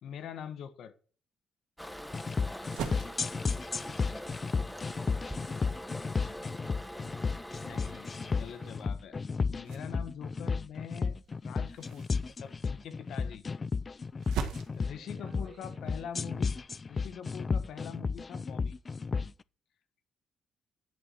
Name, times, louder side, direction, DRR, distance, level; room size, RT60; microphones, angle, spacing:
voice 1, 0.0-0.9 7.6-9.1 9.5-11.2 11.4-12.1 12.4-13.4 14.8-16.5 16.9-18.8, left 8 dB, 75° left, 1.2 m, -44 dB
Toilet flush, 1.8-8.9, left 1 dB, 5° left, 0.9 m, -44 dB
voice 2, 1.9-2.4 2.7-7.2 8.2-8.7 14.9-16.1, right 5 dB, 55° right, 2.8 m, -57 dB
sound 1, 2.1-19.3, left 4 dB, 35° left, 0.3 m, -33 dB
sound 2, 2.5-16.7, right 7 dB, 85° right, 1.6 m, -46 dB
11.0 x 4.6 x 6.9 m
cardioid pair, 90°, 0 cm